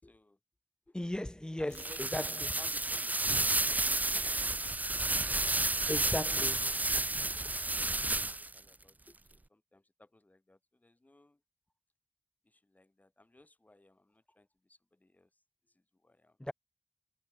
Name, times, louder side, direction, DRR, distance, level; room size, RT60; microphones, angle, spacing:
voice 1, 0.0-0.4 0.9-1.1 1.6-4.4 8.4-11.4 12.4-15.3 15.7-16.4, left 2 dB, 40° left, 5.7 m, -60 dB
voice 2, 0.9-2.5 5.9-6.8 16.4-16.5, left 1 dB, 20° left, 1.9 m, -36 dB
sound 1, 1.7-8.6, right 2 dB, 40° right, 1.2 m, -31 dB
wide cardioid pair, 60°, 4 cm